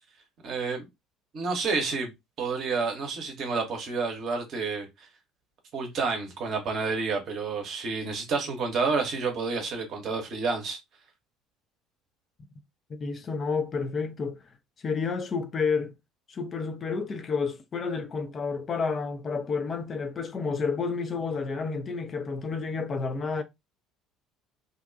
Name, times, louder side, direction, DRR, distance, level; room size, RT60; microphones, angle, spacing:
voice 1, 0.4-0.9 1.3-2.1 2.4-5.1 5.7-10.8, right 4 dB, 45° right, 0.8 m, -29 dB
voice 2, 12.9-14.4 14.8-16.0 16.3-23.4, left 5 dB, 35° left, 0.5 m, -30 dB
2.5 x 2.2 x 2.5 m
figure-of-eight pair, 60°, 0 cm